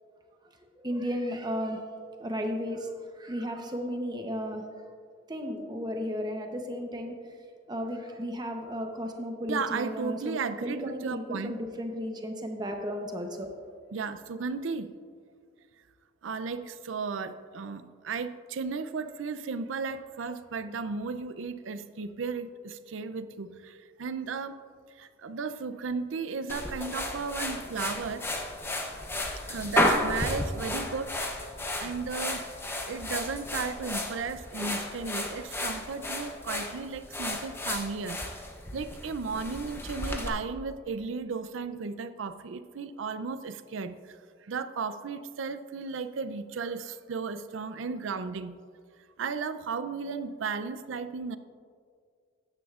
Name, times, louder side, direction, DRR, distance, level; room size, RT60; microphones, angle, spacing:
voice 1, 0.8-1.8 2.2-4.6 5.3-7.2 7.7-10.4 10.6-13.5, equal, 20° right, 4 dB, 0.8 m, -34 dB
voice 2, 9.5-11.5 13.9-14.9 16.2-24.6 25.0-28.2 29.5-31.5 31.8-32.5 32.9-38.4 38.7-48.6 49.2-51.4, right 5 dB, 80° right, 12 dB, 0.5 m, -35 dB
sound 1, 26.5-40.3, left 1 dB, 10° left, 0.7 m, -33 dB
14.0 x 9.7 x 2.4 m, 2.1 s
head